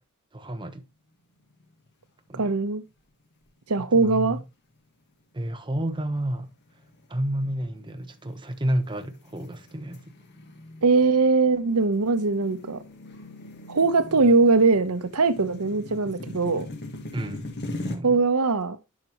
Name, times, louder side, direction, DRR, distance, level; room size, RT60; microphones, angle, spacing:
voice 1, 0.3-0.8 2.3-2.5 3.8-4.4 5.3-6.5 7.1-10.0 17.1-17.5 17.8-18.2, right 1 dB, 20° right, 1.1 m, -30 dB
sound 1, 1.5-2.0 2.4-2.5 3.2-3.7 4.2-4.5 5.1-18.0, left 1 dB, 50° left, 1.7 m, -41 dB
voice 2, 2.3-2.8 3.7-4.4 10.8-12.8 13.7-16.7 18.0-18.8, right 3 dB, 80° right, 1.0 m, -21 dB
11.5 x 5.9 x 3.0 m
head